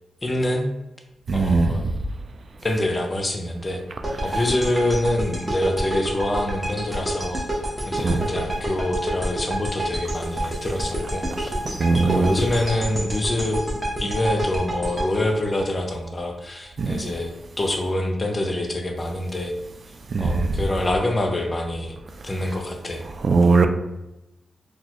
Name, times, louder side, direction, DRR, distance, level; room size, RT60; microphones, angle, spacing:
voice 1, 0.2-0.7 1.3-1.8 2.6-3.8 4.2-7.4 7.9-11.5 12.0-13.6 14.0-19.5 20.2-21.9 22.2-23.0, left 1 dB, 30° left, 3 dB, 0.6 m, -25 dB
voice 2, 1.3-1.8 8.0-8.3 11.8-12.3 16.8-16.9 20.1-20.5 23.2-23.7, right 4 dB, 50° right, 7 dB, 0.3 m, -19 dB
sound 1, 4.0-16.2, right 1 dB, 10° right, 0.9 m, -28 dB
3.9 x 2.3 x 3.0 m, 0.92 s
cardioid pair, 80°, 0 cm